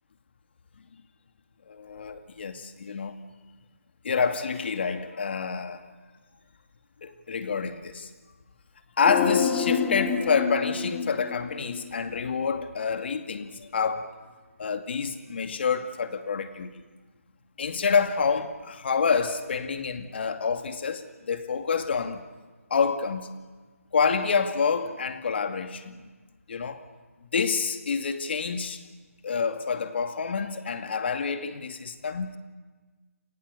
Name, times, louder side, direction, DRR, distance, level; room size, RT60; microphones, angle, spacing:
voice 1, 1.7-3.1 4.0-5.8 7.0-8.1 9.0-14.1 14.6-16.8 17.6-22.2 22.7-23.3 23.9-26.0 26.5-26.8 27.3-28.8 29.2-32.4, left 5 dB, 45° left, 2.3 m, -28 dB
sound 1, 9.0-12.3 12.6-12.7, left 7 dB, 15° left, 1.3 m, -28 dB
29.5 x 28.0 x 6.8 m
figure-of-eight pair, 160°, 8 cm